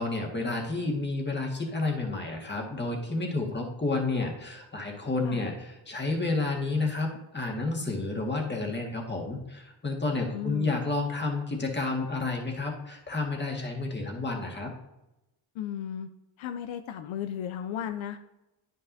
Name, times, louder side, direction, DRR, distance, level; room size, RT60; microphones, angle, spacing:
voice 1, 0.0-14.7, left 3 dB, 20° left, 1 dB, 1.8 m, -30 dB
voice 2, 10.3-10.8 15.6-16.1 16.4-18.2, left 9 dB, 75° left, 8 dB, 0.6 m, -35 dB
9.5 x 5.5 x 2.7 m, 0.94 s
cardioid pair, 75°, 47 cm